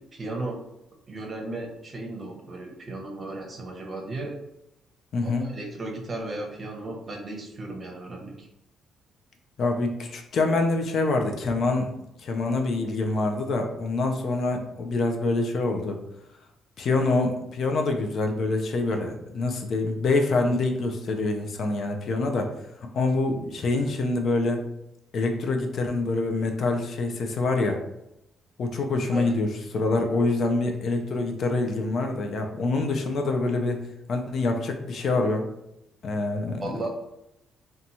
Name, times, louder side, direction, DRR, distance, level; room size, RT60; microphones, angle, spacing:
voice 1, 0.1-0.6 1.1-4.3 5.2-8.5 29.1-29.3 36.6-36.9, right 2 dB, 35° right, 1 dB, 0.7 m, -35 dB
voice 2, 5.1-5.5 9.6-11.9 12.2-16.0 16.8-22.5 22.9-24.6 25.1-27.8 28.6-35.5 36.0-36.9, left 3 dB, 60° left, 4 dB, 0.4 m, -26 dB
2.8 x 2.2 x 2.6 m, 0.85 s
cardioid pair, 90°, 0 cm